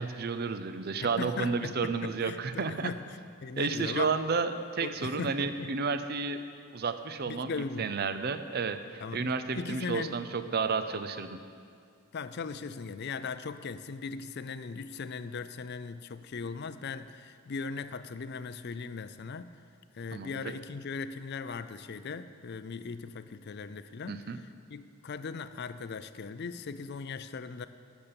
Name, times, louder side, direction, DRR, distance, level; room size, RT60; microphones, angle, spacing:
voice 1, 0.0-2.9 3.6-6.4 6.7-11.4 20.1-20.4 24.1-24.4, right 4 dB, 45° right, 10 dB, 0.5 m, -31 dB
voice 2, 1.2-3.0 3.4-4.1 4.8-5.7 7.3-7.9 9.0-10.2 12.1-19.5 19.9-27.7, left 5 dB, 45° left, 13 dB, 0.4 m, -39 dB
12.0 x 7.2 x 6.9 m, 2.3 s
head